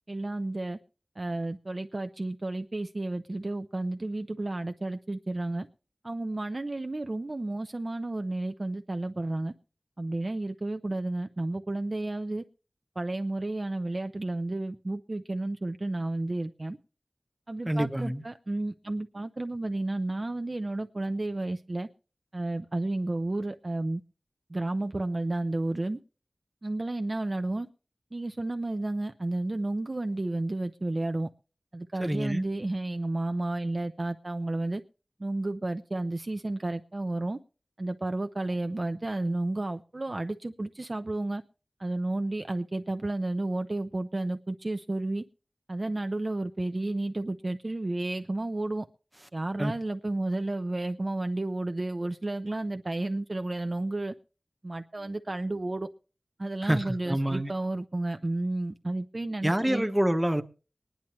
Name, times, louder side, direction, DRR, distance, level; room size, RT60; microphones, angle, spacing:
voice 1, 0.1-0.8 1.2-5.7 6.0-9.5 10.0-12.4 13.0-16.8 17.5-21.9 22.3-24.0 24.5-26.0 26.6-27.7 28.1-31.3 31.7-34.8 35.2-37.4 37.8-41.4 41.8-45.2 45.7-48.9 49.3-54.1 54.6-55.9 56.4-59.9, right 2 dB, 45° right, 0.7 m, -32 dB
voice 2, 17.7-18.2 32.0-32.4 49.6-49.7 56.6-57.5 59.4-60.4, right 1 dB, 10° right, 1.1 m, -27 dB
23.5 x 10.5 x 3.1 m
wide cardioid pair, 65°, 0 cm